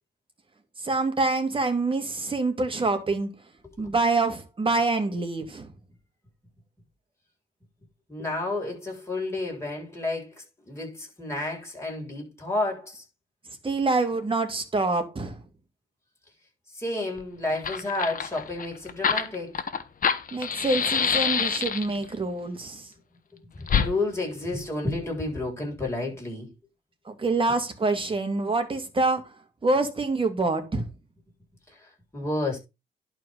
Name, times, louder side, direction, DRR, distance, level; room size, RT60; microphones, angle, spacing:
voice 1, 0.8-3.3 3.8-5.7 13.6-15.4 20.3-22.9 27.1-29.3 29.6-30.9, right 3 dB, 25° right, 2.7 m, -26 dB
voice 2, 8.1-13.0 16.7-19.6 23.5-26.5 31.7-32.6, left 2 dB, 15° left, 7.6 m, -31 dB
Fire, 17.2-17.3 17.5-22.0 23.7-23.9, left 7 dB, 45° left, 1.3 m, -26 dB
11.0 x 4.8 x 5.7 m
cardioid pair, 90°, 20 cm